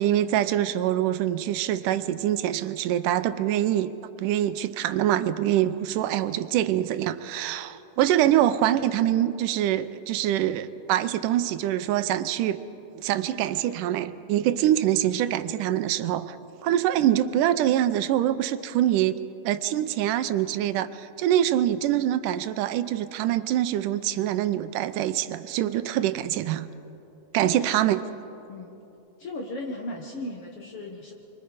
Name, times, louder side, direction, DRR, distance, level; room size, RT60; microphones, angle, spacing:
voice 1, 0.0-3.9 4.2-12.6 13.0-16.4 16.6-19.1 19.4-26.7 27.3-28.0, right 12 dB, 90° right, 12 dB, 2.3 m, -24 dB
voice 2, 27.4-27.8 28.5-28.8 29.2-31.1, left 2 dB, 55° left, 1 dB, 2.1 m, -36 dB
30.0 x 23.0 x 5.0 m, 2.9 s
omnidirectional pair, 3.6 m